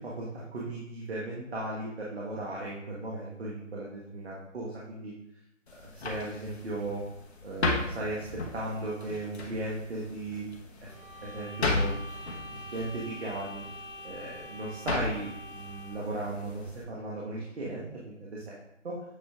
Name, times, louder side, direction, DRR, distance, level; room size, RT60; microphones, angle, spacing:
voice 1, 0.0-5.1 5.8-7.0 7.4-10.4 11.2-13.6 14.0-18.6 18.8-19.0, right 2 dB, 55° right, -5 dB, 1.4 m, -36 dB
sound 1, 5.7-16.8, left 3 dB, 55° left, 1.1 m, -36 dB
sound 2, 10.9-16.1, equal, 85° left, 2.6 m, -45 dB
9.0 x 5.3 x 2.4 m, 0.79 s
figure-of-eight pair, 165°, 39 cm